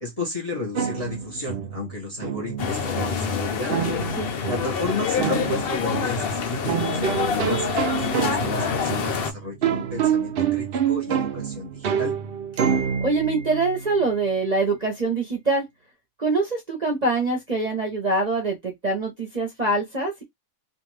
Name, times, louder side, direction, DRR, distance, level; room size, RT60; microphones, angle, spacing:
voice 1, 0.0-3.8 4.5-12.2, left 2 dB, 30° left, 0.8 m, -33 dB
sound 1, 0.8-14.3, right 8 dB, 75° right, 0.5 m, -27 dB
sound 2, 2.6-9.3, left 6 dB, 80° left, 0.5 m, -26 dB
voice 2, 13.0-15.7 16.2-20.2, right 3 dB, 35° right, 0.7 m, -24 dB
2.5 x 2.5 x 3.2 m
omnidirectional pair, 1.6 m